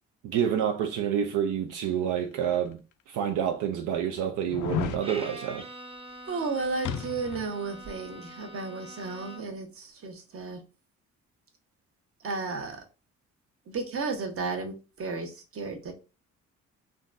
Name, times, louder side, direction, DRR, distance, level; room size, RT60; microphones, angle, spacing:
voice 1, 0.2-2.8 3.1-5.7, right 8 dB, 80° right, 0.5 m, -28 dB
sound 1, 2.5-2.6 3.3-3.4 4.5-5.0 6.8-7.5 7.8-7.9, left 8 dB, 85° left, 0.5 m, -32 dB
Bowed string instrument, 5.0-9.7, right 1 dB, 20° right, 0.6 m, -44 dB
voice 2, 6.3-10.6 12.2-12.8 13.7-15.9, right 4 dB, 50° right, 0.9 m, -33 dB
3.7 x 2.2 x 2.4 m
cardioid pair, 90°, 30 cm